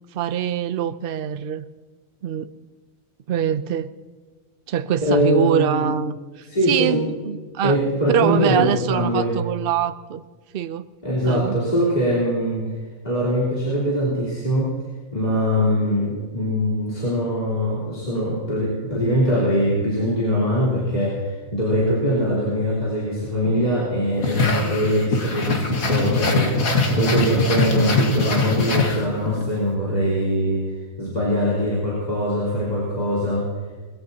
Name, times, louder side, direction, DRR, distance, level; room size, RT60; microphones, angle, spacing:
voice 1, 0.1-1.6 2.2-2.5 3.3-3.9 4.7-7.8 8.1-10.2 10.5-10.9 11.2-11.6, right 9 dB, 50° right, 11 dB, 0.7 m, -24 dB
voice 2, 5.0-5.8 6.5-7.0 7.6-9.3 11.0-12.7 13.0-14.7 15.1-30.6 31.0-33.5, equal, 30° left, -6 dB, 3.8 m, -22 dB
sound 1, 24.2-29.4, left 3 dB, 85° left, 2.1 m, -22 dB
21.0 x 16.0 x 2.9 m, 1.4 s
omnidirectional pair, 1.4 m